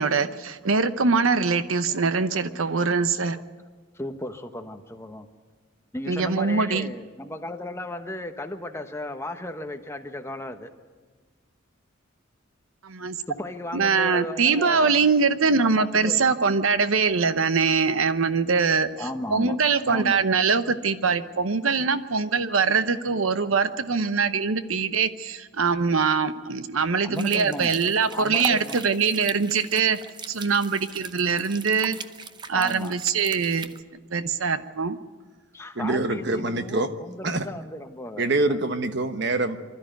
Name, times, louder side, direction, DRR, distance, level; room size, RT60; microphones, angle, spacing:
voice 1, 0.0-3.4 6.1-6.9 12.8-13.2 13.7-30.0 30.3-32.0 32.5-33.7 34.1-35.0, right 5 dB, 85° right, 12 dB, 0.9 m, -23 dB
voice 2, 3.9-5.3 5.9-10.7 13.3-14.9 15.6-16.2 19.0-19.6 19.9-20.2 27.0-27.7 28.1-28.9 32.5-32.9 35.5-38.6, left 1 dB, 15° left, 6 dB, 1.1 m, -35 dB
sound 1, 27.2-33.8, right 5 dB, 20° right, 0.7 m, -40 dB
voice 3, 35.7-36.9 37.2-37.5 38.2-39.8, right 2 dB, 55° right, 9 dB, 1.2 m, -25 dB
24.5 x 13.0 x 9.2 m, 1.4 s
head